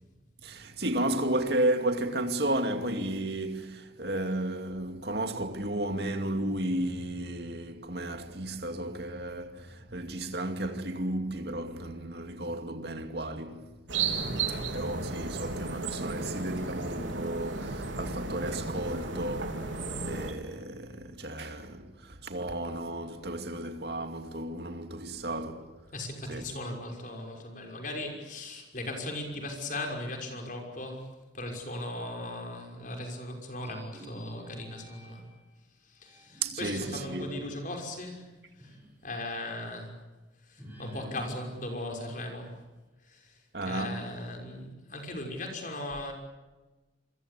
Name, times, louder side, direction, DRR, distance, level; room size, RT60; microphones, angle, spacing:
voice 1, 0.4-13.7 14.5-25.8 26.3-26.4 36.4-37.3 43.5-44.1, right 1 dB, 55° right, 2.5 m, -33 dB
sound 1, 13.9-20.3, right 4 dB, 90° right, 3.9 m, -34 dB
voice 2, 14.1-14.7 25.9-35.2 35.8-38.3 38.6-39.9 40.4-42.6 43.0-43.4 43.6-46.1, left 1 dB, 45° left, 5.9 m, -38 dB
sound 2, 33.6-35.4 36.0-39.0 39.4-39.5 40.6-42.6, right 1 dB, 10° right, 6.8 m, -48 dB
27.5 x 23.0 x 8.5 m
head